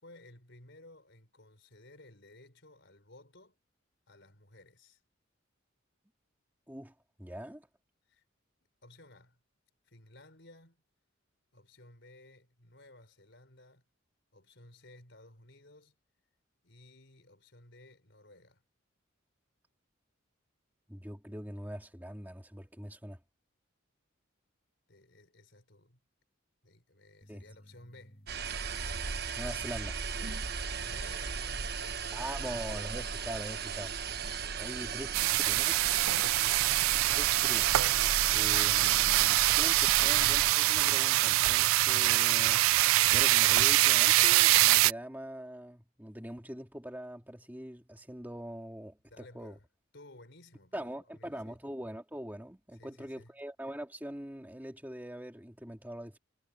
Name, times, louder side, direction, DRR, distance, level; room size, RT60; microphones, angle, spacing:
voice 1, 0.0-3.6 4.1-5.0 8.0-8.2 8.8-9.4 9.8-10.8 11.5-13.8 14.3-15.9 16.6-18.6 24.9-26.0 26.6-28.3 30.5-32.7 34.4-35.3 49.1-49.7 49.9-51.6 52.7-53.3, left 2 dB, 60° left, 4.9 m, -56 dB
voice 2, 7.2-7.7 20.9-23.2 27.3-27.4 29.4-30.3 32.1-33.9 34.6-35.1 35.4-35.8 37.1-37.7 38.3-42.6 43.1-49.5 50.7-56.2, equal, 10° right, 2.2 m, -43 dB
sound 1, 27.2-34.5, equal, 30° left, 7.3 m, -57 dB
sound 2, 28.3-40.5, right 6 dB, 50° right, 1.2 m, -36 dB
sound 3, 35.1-44.9, right 17 dB, 80° right, 0.3 m, -24 dB
head